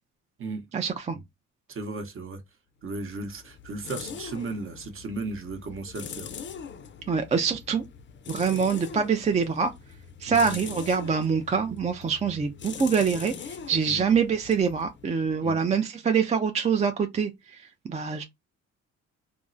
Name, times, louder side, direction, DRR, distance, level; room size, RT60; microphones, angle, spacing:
voice 1, 0.7-1.2 7.1-7.8 8.3-9.7 10.2-18.2, right 6 dB, 25° right, 0.4 m, -25 dB
voice 2, 1.7-2.4 2.8-6.3 10.3-10.6 13.9-14.0 15.4-15.6, right 3 dB, 45° right, 0.8 m, -35 dB
sound 1, 2.9-15.6, left 6 dB, 40° left, 0.5 m, -42 dB
3.5 x 2.0 x 2.5 m
cardioid pair, 90°, 30 cm